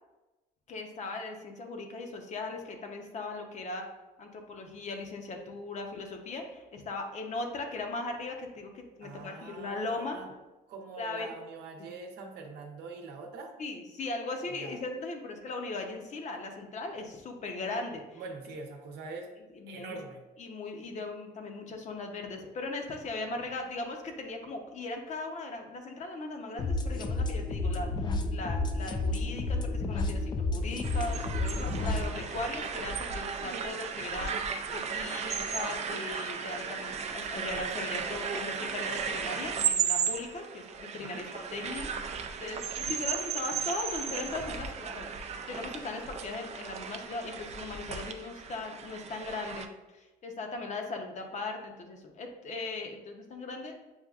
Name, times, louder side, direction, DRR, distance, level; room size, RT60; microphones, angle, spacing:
voice 1, 0.7-3.9 4.2-10.2 11.0-11.3 11.8-11.9 13.6-18.2 19.5-20.0 20.4-27.9 28.3-53.8, left 3 dB, 45° left, 3 dB, 0.7 m, -38 dB
voice 2, 9.0-10.3 10.7-13.5 14.6-14.8 18.2-19.3 19.7-20.2 41.1-41.2, right 3 dB, 80° right, 2 dB, 0.8 m, -43 dB
sound 1, 26.6-32.1, left 2 dB, 25° left, 0.3 m, -31 dB
sound 2, 30.8-49.7, right 7 dB, 40° right, 0.4 m, -35 dB
7.1 x 2.5 x 2.3 m, 1.1 s
cardioid pair, 110°, 17 cm